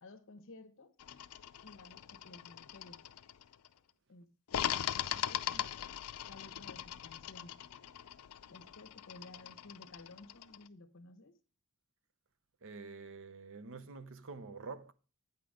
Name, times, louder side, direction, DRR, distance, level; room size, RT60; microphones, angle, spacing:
voice 1, 0.0-0.9 1.6-3.0 4.1-4.7 5.1-5.9 6.3-7.6 8.5-11.3, left 2 dB, 60° left, 1.0 m, -55 dB
sound 1, 1.0-3.7 4.5-10.7, left 10 dB, 80° left, 0.5 m, -40 dB
voice 2, 12.6-14.9, right 4 dB, 60° right, 0.7 m, -47 dB
9.1 x 5.9 x 4.9 m
head